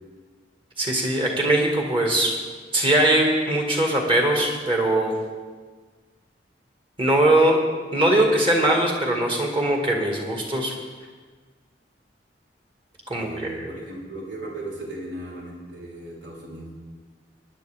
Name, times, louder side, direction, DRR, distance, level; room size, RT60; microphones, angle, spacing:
voice 1, 0.8-2.3 2.7-5.2 7.0-7.6 7.9-10.7 13.1-13.7, right 1 dB, 30° right, 0 dB, 1.9 m, -21 dB
voice 2, 13.1-16.7, right 1 dB, 75° right, -5 dB, 3.6 m, -36 dB
19.5 x 10.0 x 3.5 m, 1.4 s
head